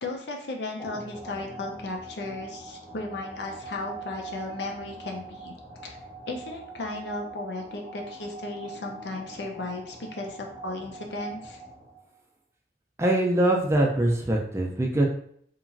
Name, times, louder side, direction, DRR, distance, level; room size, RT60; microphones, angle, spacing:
voice 1, 0.0-5.5 5.8-6.0 6.3-11.6, left 2 dB, 70° left, 2 dB, 0.5 m, -35 dB
sound 1, 0.8-12.1, right 3 dB, 25° left, 0.7 m, -42 dB
voice 2, 13.0-15.0, right 1 dB, 15° right, -1 dB, 0.4 m, -23 dB
2.9 x 2.4 x 2.5 m, 0.63 s
head